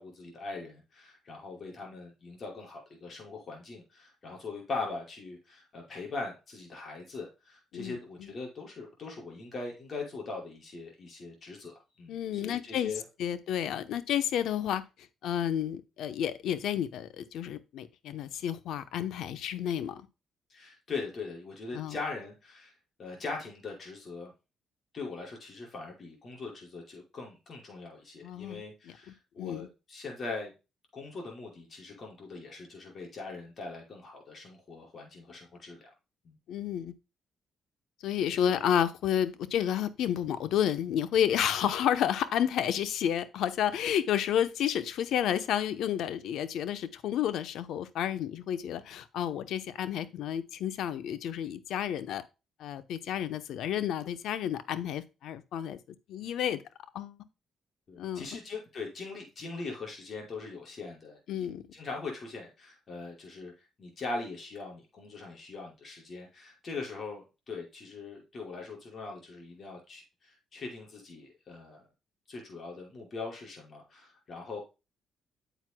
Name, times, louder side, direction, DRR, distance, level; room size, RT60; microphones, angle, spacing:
voice 1, 0.0-13.0 20.5-22.7 23.0-24.3 24.9-30.5 30.9-35.9 36.2-36.3 38.2-38.6 57.9-61.5 61.7-71.8 72.3-74.6, left 3 dB, 45° left, 5.4 m, -41 dB
voice 2, 7.7-8.3 12.1-12.9 13.2-14.8 15.2-20.0 21.7-21.9 28.2-28.6 29.4-29.7 36.5-36.9 38.0-52.2 52.6-55.8 56.1-56.6 56.9-57.2 58.0-58.4 61.3-61.6, left 10 dB, 80° left, 0.9 m, -31 dB
9.2 x 8.0 x 2.2 m
cardioid pair, 90°, 0 cm